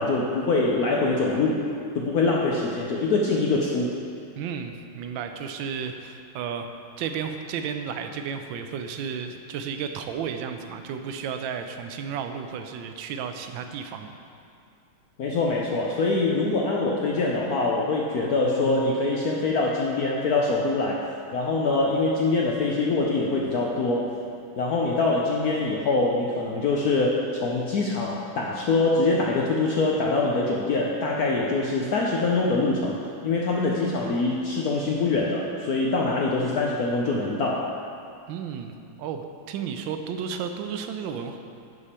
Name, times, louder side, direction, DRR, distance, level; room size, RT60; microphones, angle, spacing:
voice 1, 0.0-1.6 1.9-3.9 15.2-21.0 21.3-24.1 24.6-33.0 33.2-37.7, left 3 dB, 70° left, -2 dB, 0.8 m, -24 dB
voice 2, 4.4-6.7 7.0-14.1 38.3-41.4, right 7 dB, 75° right, 6 dB, 1.2 m, -33 dB
11.0 x 5.1 x 4.3 m, 2.4 s
omnidirectional pair, 2.3 m